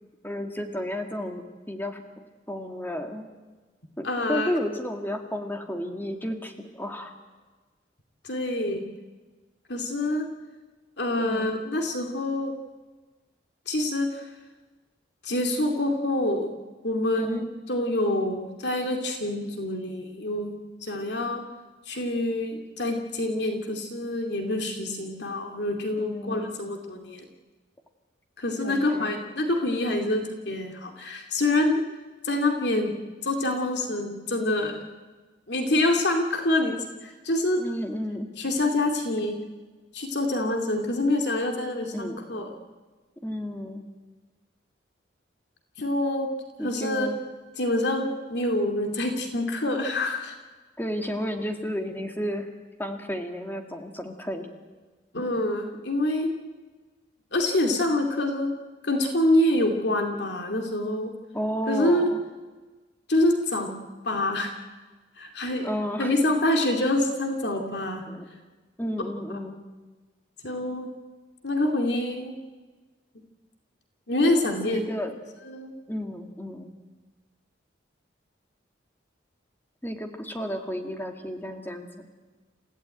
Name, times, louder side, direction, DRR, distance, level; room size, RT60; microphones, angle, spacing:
voice 1, 0.0-2.0 2.5-3.3 4.0-7.1 11.2-11.5 17.2-17.5 26.0-26.5 28.6-29.2 37.6-38.3 41.9-42.2 43.2-43.8 46.6-47.2 50.8-52.5 52.8-54.5 61.3-62.2 65.6-66.1 68.1-68.3 68.8-69.6 74.6-75.2 75.9-76.7 79.8-82.1, equal, 10° left, 4 dB, 2.1 m, -32 dB
voice 2, 4.0-4.5 8.2-8.8 9.7-10.3 11.0-12.5 13.7-14.3 15.2-16.5 16.8-21.4 21.9-27.3 28.4-31.8 32.2-34.7 35.5-36.8 37.0-37.6 38.4-39.4 39.9-42.5 45.8-46.3 46.6-47.1 47.6-50.3 55.1-56.3 57.3-58.5 58.8-61.1 61.7-62.1 63.1-63.7 64.0-64.5 65.2-65.7 66.0-68.0 70.4-70.9 71.4-72.4 74.1-74.8 75.5-75.7, left 1 dB, 65° left, 3 dB, 2.5 m, -26 dB
28.5 x 15.5 x 9.1 m, 1.3 s
head